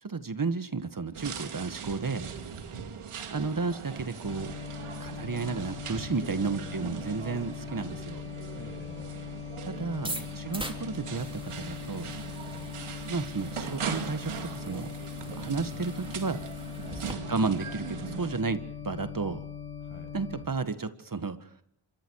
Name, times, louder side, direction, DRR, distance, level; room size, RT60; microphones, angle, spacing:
voice 1, 0.0-2.3 3.3-4.5 5.0-8.2 9.6-12.1 13.1-14.9 15.4-16.4 17.3-19.4 20.1-21.5, right 4 dB, 40° right, 11 dB, 1.9 m, -32 dB
sound 1, 1.1-18.4, right 7 dB, 85° right, 2.3 m, -41 dB
voice 2, 2.7-3.0 6.3-6.5 8.5-9.1 9.8-10.3 12.4-12.7 15.6-16.3 16.7-17.0 19.8-20.1, left 2 dB, 20° left, 0 dB, 7.5 m, -50 dB
sound 2, 4.2-20.4, left 8 dB, 80° left, 3.3 m, -41 dB
sound 3, 9.9-17.1, right 1 dB, 10° right, 3.3 m, -43 dB
26.5 x 24.0 x 4.9 m, 0.69 s
cardioid pair, 45°, 50 cm